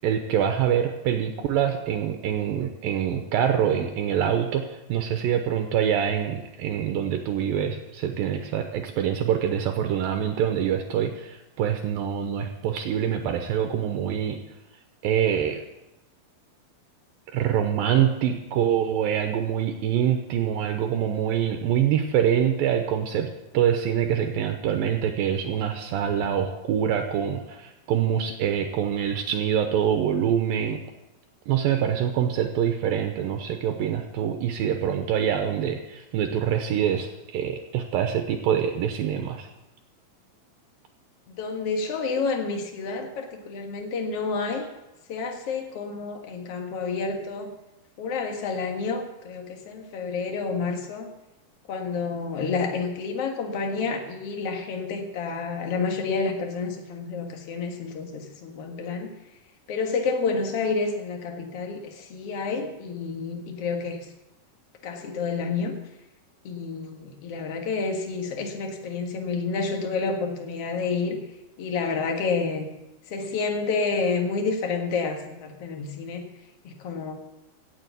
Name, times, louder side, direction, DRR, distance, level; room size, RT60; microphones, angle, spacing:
voice 1, 0.0-14.4 15.0-15.6 17.3-30.8 31.5-39.5, right 9 dB, 75° right, 5 dB, 2.5 m, -25 dB
voice 2, 41.3-44.7 45.1-47.6 48.0-51.1 51.7-59.1 59.7-64.1 64.8-65.8 66.4-71.2 71.6-72.6 73.1-76.3 76.6-77.1, left 4 dB, 50° left, 4 dB, 2.1 m, -29 dB
17.0 x 6.9 x 8.1 m, 0.97 s
omnidirectional pair, 4.4 m